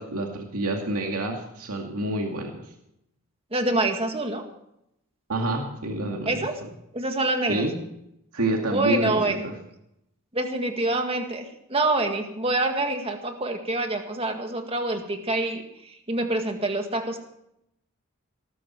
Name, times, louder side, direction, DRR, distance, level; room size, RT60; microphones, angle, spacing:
voice 1, 0.0-2.7 5.3-6.7 7.5-7.7 8.3-9.5, right 2 dB, 85° right, 1 dB, 2.4 m, -28 dB
voice 2, 3.5-4.4 6.3-6.5 6.9-7.7 8.7-9.4 10.3-17.2, right 2 dB, 25° right, 5 dB, 2.0 m, -26 dB
18.5 x 13.5 x 4.6 m, 0.79 s
head